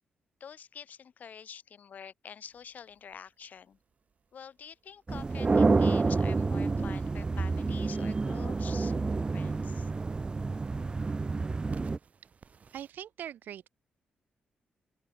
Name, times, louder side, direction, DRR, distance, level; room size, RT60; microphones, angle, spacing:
voice 1, 0.4-3.8 4.3-8.9 9.3-9.9, left 7 dB, 60° left, 4.4 m, -47 dB
sound 1, 2.4-12.9, right 6 dB, 50° right, 6.2 m, -60 dB
sound 2, 5.1-12.0, right 3 dB, 30° right, 0.6 m, -28 dB
voice 2, 12.7-13.7, right 10 dB, 80° right, 1.4 m, -42 dB
open air
cardioid pair, 85°, 3 cm